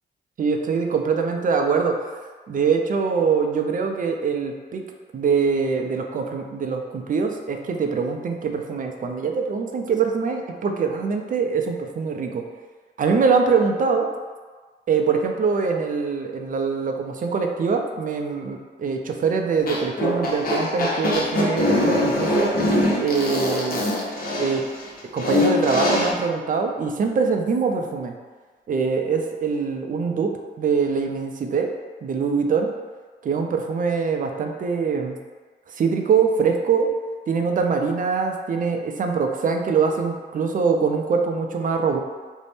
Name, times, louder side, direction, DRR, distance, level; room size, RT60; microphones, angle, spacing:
voice 1, 0.4-2.2 2.5-4.8 5.1-12.4 13.0-14.1 14.9-22.5 23.0-23.8 24.4-24.6 25.1-28.1 28.7-30.3 30.6-31.7 32.0-32.7 33.2-35.2 35.7-36.9 37.3-42.0, right 5 dB, 40° right, 4 dB, 0.4 m, -23 dB
sound 1, 19.6-26.1, left 1 dB, 45° left, 0.7 m, -23 dB
2.6 x 2.1 x 3.3 m, 1.4 s
supercardioid pair, 55°, 20 cm